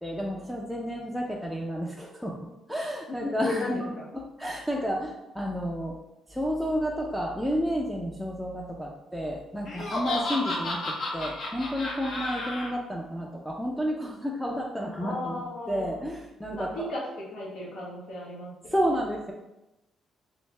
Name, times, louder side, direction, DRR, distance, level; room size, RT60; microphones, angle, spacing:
voice 1, 0.0-3.9 4.4-6.0 6.3-16.8 18.7-19.3, equal, 5° left, -2 dB, 0.4 m, -31 dB
voice 2, 3.1-4.1 14.9-16.1 16.5-17.0 17.3-18.5, left 2 dB, 75° left, -4 dB, 1.1 m, -35 dB
Laughter, 9.7-12.7, left 2 dB, 55° left, 0.8 m, -32 dB
3.2 x 2.7 x 3.2 m, 0.95 s
cardioid pair, 90°, 0 cm